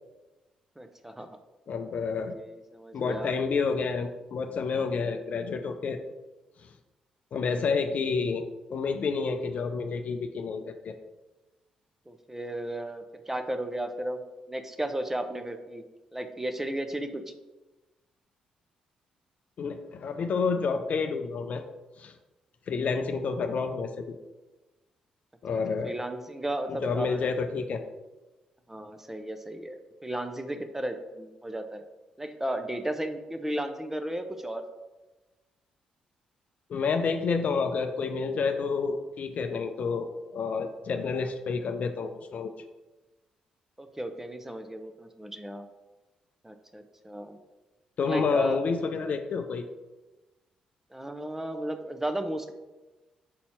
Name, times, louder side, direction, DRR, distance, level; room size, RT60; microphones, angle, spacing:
voice 1, 0.8-1.3 2.1-3.3 12.1-14.2 14.5-15.8 16.1-17.2 25.8-27.3 28.7-31.8 32.2-34.6 43.8-45.7 46.4-47.4 48.0-48.6 50.9-52.5, right 1 dB, 10° right, 7 dB, 0.9 m, -34 dB
voice 2, 1.7-2.4 2.9-6.0 7.3-11.0 19.6-21.6 22.0-22.1 22.7-24.2 25.4-26.1 26.7-27.8 36.7-42.5 48.0-49.6, left 5 dB, 55° left, 7 dB, 0.5 m, -29 dB
6.4 x 4.2 x 4.4 m, 1.1 s
hypercardioid pair, 40°, 3 cm